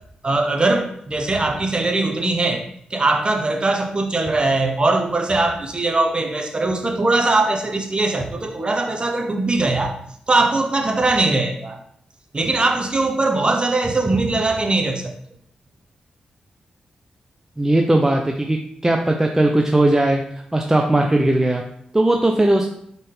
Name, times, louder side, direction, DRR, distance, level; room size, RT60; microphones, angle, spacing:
voice 1, 0.2-10.0 10.3-11.8 12.3-15.1, right 2 dB, 35° right, 3 dB, 0.9 m, -21 dB
voice 2, 17.6-18.6 18.8-20.2 20.5-21.6 21.9-22.7, right 1 dB, 15° right, 2 dB, 0.6 m, -18 dB
4.0 x 3.8 x 3.4 m, 0.70 s
supercardioid pair, 45°, 3 cm